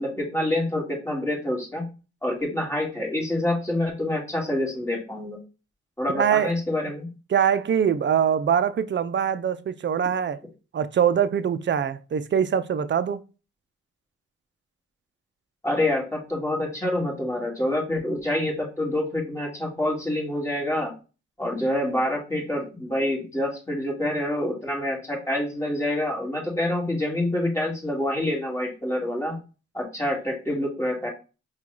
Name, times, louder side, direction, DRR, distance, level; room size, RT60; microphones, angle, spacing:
voice 1, 0.0-1.9 2.2-5.4 6.0-7.1 15.6-20.9 21.4-29.4 29.7-31.1, left 1 dB, 10° left, 2.0 m, -27 dB
voice 2, 6.1-6.5 7.3-10.4 10.7-13.2, right 8 dB, 40° right, 0.5 m, -23 dB
4.5 x 2.4 x 3.9 m
cardioid pair, 65°, 29 cm